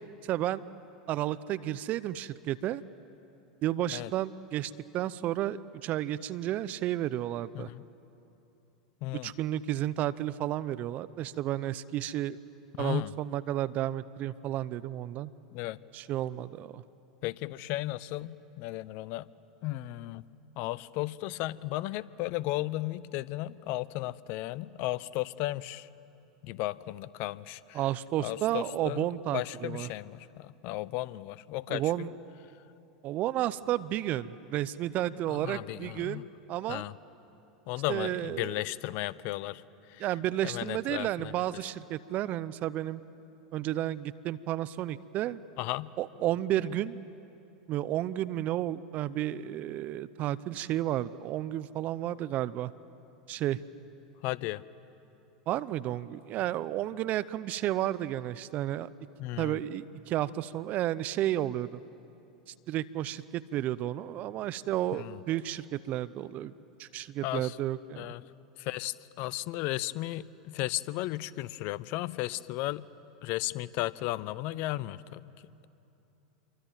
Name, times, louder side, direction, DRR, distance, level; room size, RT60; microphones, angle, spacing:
voice 1, 0.2-0.6 1.1-2.8 3.6-7.7 9.2-12.4 12.8-15.3 15.9-16.8 27.7-29.9 31.7-32.1 33.0-36.2 36.5-36.8 37.9-38.6 40.0-43.0 43.5-45.4 46.0-47.0 47.7-52.7 53.3-53.6 55.5-58.9 59.4-61.8 62.7-66.5 66.8-68.1, right 13 dB, 45° right, 17 dB, 0.7 m, -32 dB
voice 2, 9.0-9.3 12.8-13.1 15.5-15.8 17.2-19.3 19.6-20.2 20.6-25.9 26.4-27.8 28.2-29.1 29.3-32.1 35.3-36.2 36.7-36.9 37.7-39.6 39.9-40.0 40.4-41.3 45.6-45.9 54.2-54.6 59.2-59.6 65.0-65.2 67.2-67.6 68.0-68.2 68.6-72.9 73.2-75.2, left 17 dB, 50° left, 20 dB, 0.7 m, -35 dB
27.0 x 24.0 x 9.1 m, 2.9 s
hypercardioid pair, 95°, 4 cm